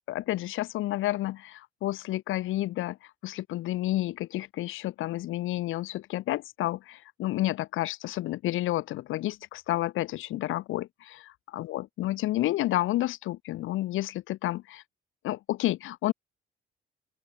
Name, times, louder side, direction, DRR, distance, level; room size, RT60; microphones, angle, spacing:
voice 1, 0.1-14.8 15.2-16.1, left 15 dB, 90° left, 3.2 m, -30 dB
open air
cardioid pair, 90°, 20 cm